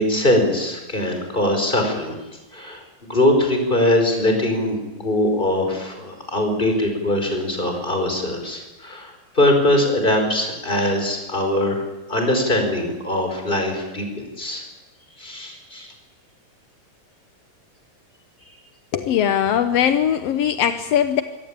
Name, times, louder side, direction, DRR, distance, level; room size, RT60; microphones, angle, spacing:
voice 1, 0.0-2.2 2.5-14.6 15.2-15.9 18.5-18.6, left 1 dB, 15° left, 4 dB, 4.9 m, -22 dB
voice 2, 18.9-21.2, left 9 dB, 70° left, 8 dB, 1.5 m, -20 dB
24.5 x 17.0 x 8.9 m, 1.0 s
omnidirectional pair, 4.0 m